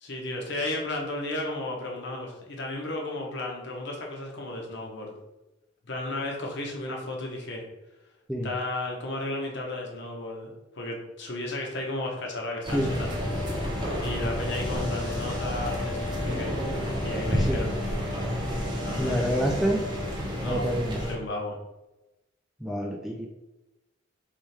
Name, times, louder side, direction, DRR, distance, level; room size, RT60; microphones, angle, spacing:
voice 1, 0.0-5.1 5.8-7.6 8.4-13.1 14.0-16.5 17.0-17.7 18.8-19.3 20.4-20.7 21.0-21.6, left 2 dB, 60° left, 0 dB, 1.0 m, -34 dB
sound 1, 12.6-21.1, left 1 dB, 25° right, 0.9 m, -30 dB
voice 2, 19.0-19.8 20.4-21.0 22.6-23.3, equal, ahead, -1 dB, 0.4 m, -27 dB
4.2 x 3.4 x 3.3 m, 0.99 s
head